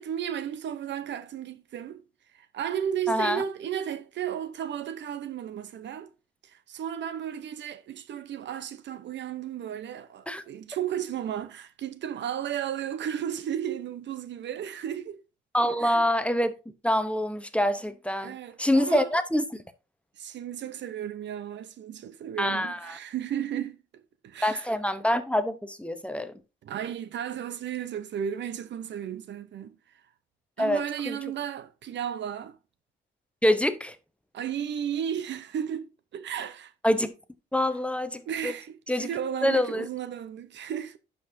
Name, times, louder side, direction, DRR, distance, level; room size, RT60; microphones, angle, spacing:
voice 1, 0.0-2.0 2.3-6.1 6.4-15.2 15.8-16.0 18.2-19.1 20.2-24.8 26.6-29.8 30.6-32.6 34.3-36.7 38.3-41.0, right 9 dB, 65° right, 0.8 m, -34 dB
voice 2, 3.1-3.4 10.3-10.4 15.5-16.5 16.8-19.4 22.4-22.9 24.4-26.3 30.6-31.2 33.4-34.0 36.8-37.1 37.5-38.5 38.9-39.1 39.4-39.9, left 1 dB, 5° left, 0.8 m, -26 dB
11.0 x 5.4 x 2.7 m
cardioid pair, 90°, 20 cm